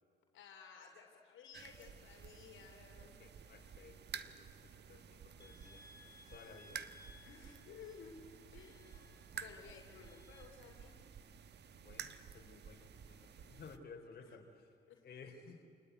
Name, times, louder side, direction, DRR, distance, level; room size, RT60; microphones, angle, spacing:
voice 1, 0.3-3.2 7.2-8.2 8.5-11.0 14.2-14.3 14.9-15.1, left 6 dB, 80° left, 2 dB, 3.0 m, -56 dB
sound 1, 1.5-13.8, right 7 dB, 60° right, 1.2 m, -52 dB
voice 2, 3.2-5.9 6.3-6.8 11.8-14.7 15.0-15.7, left 4 dB, 50° left, 2 dB, 3.5 m, -56 dB
sound 2, 5.4-10.4, left 2 dB, 20° left, 4.2 m, -63 dB
27.5 x 20.0 x 9.3 m, 2.4 s
cardioid pair, 90°, 20 cm